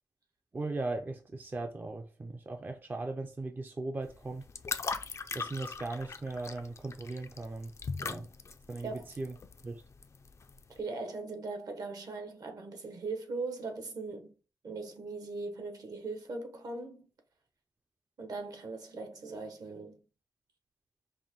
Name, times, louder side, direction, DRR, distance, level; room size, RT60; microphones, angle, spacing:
voice 1, 0.5-4.5 5.3-7.7 8.0-8.3 8.7-8.9 9.2-9.3 9.6-9.8, right 2 dB, 25° right, 0.5 m, -38 dB
sound 1, 4.0-10.8, left 4 dB, 45° left, 0.4 m, -40 dB
voice 2, 8.8-9.2 10.8-14.3 14.6-17.1 18.2-20.0, right 3 dB, 60° right, 1.0 m, -40 dB
5.4 x 2.1 x 3.0 m
cardioid pair, 95°, 7 cm